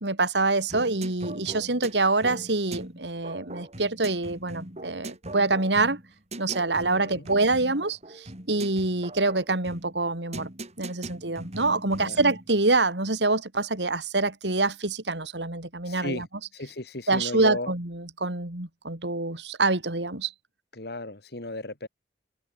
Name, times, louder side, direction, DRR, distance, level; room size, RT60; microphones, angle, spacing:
voice 1, 0.0-6.0 6.4-10.5 10.8-16.3 17.1-20.3, right 3 dB, 80° right, 3.4 m, -26 dB
sound 1, 0.7-12.5, right 1 dB, 40° right, 7.1 m, -40 dB
voice 2, 6.9-7.3 11.8-12.2 15.9-16.3 16.5-17.7 20.7-21.9, left 2 dB, 65° left, 2.7 m, -35 dB
head